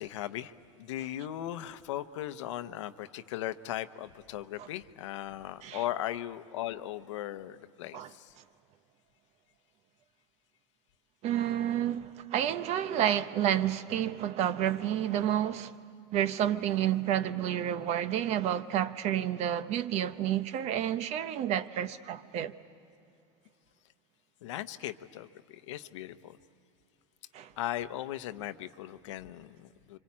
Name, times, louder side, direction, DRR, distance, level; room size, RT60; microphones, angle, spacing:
voice 1, 0.0-8.3 24.4-26.4 27.6-30.0, left 13 dB, 80° left, 0.9 m, -38 dB
voice 2, 11.2-15.7 16.1-22.5 27.3-27.5, right 10 dB, 45° right, 0.9 m, -30 dB
26.0 x 25.0 x 8.6 m
supercardioid pair, 120°, 15 cm